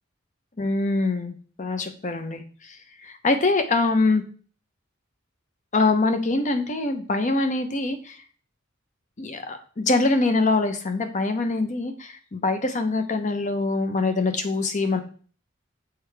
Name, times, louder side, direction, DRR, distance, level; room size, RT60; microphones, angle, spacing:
voice 1, 0.6-2.8 3.0-4.2 5.7-8.2 9.2-15.0, left 3 dB, 40° left, 8 dB, 0.7 m, -24 dB
6.7 x 4.6 x 3.3 m, 0.43 s
head